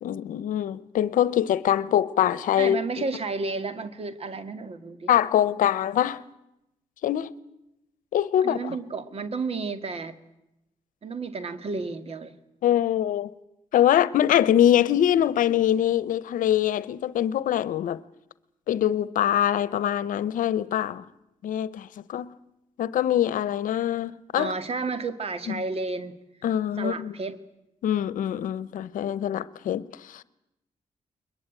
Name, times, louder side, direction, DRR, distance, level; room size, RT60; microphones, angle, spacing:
voice 1, 0.0-3.0 5.1-6.2 7.0-7.3 8.1-8.8 12.6-13.3 13.7-18.0 18.7-21.0 21.4-22.3 22.8-24.5 25.5-25.6 26.4-27.1 27.8-30.2, left 11 dB, 90° left, 0.8 m, -24 dB
voice 2, 2.6-5.1 8.4-10.2 11.0-12.4 24.4-26.2 26.8-27.4, right 4 dB, 50° right, 1.9 m, -32 dB
22.5 x 21.0 x 9.1 m
cardioid pair, 80°, 13 cm